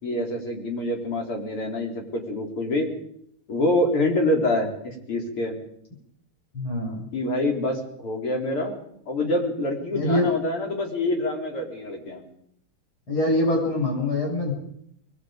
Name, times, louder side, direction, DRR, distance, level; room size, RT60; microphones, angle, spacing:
voice 1, 0.0-2.9 3.5-5.5 7.1-8.8 9.1-12.2, left 1 dB, 90° left, 1 dB, 5.0 m, -26 dB
voice 2, 6.5-7.1 9.9-10.3 13.1-14.5, left 1 dB, 70° left, -1 dB, 7.8 m, -24 dB
27.0 x 21.0 x 5.2 m, 0.71 s
omnidirectional pair, 2.4 m